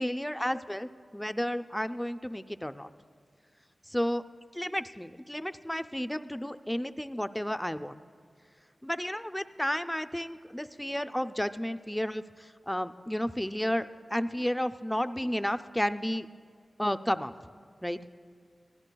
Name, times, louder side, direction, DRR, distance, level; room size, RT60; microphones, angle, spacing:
voice 1, 0.0-2.9 3.9-4.2 4.5-8.0 8.8-16.3 16.8-17.3 17.8-18.0, equal, 5° left, 11 dB, 0.4 m, -32 dB
23.0 x 15.5 x 2.3 m, 2.1 s
wide cardioid pair, 100°, 0 cm